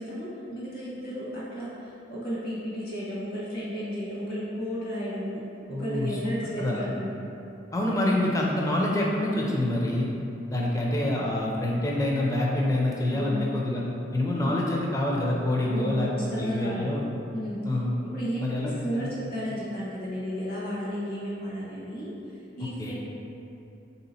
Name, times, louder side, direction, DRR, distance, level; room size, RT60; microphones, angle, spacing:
voice 1, 0.0-5.4 5.7-7.1 13.1-13.5 14.4-14.6 15.6-17.0 17.3-17.6 18.0-22.9, equal, 55° left, -7 dB, 1.1 m, -33 dB
voice 2, 5.7-6.2 6.6-6.9 7.7-10.1 10.5-13.8 14.1-16.1 16.4-17.0 17.6-17.9 18.4-19.1 22.8-22.9, left 1 dB, 20° left, -3 dB, 0.4 m, -26 dB
3.5 x 2.8 x 4.1 m, 2.8 s
head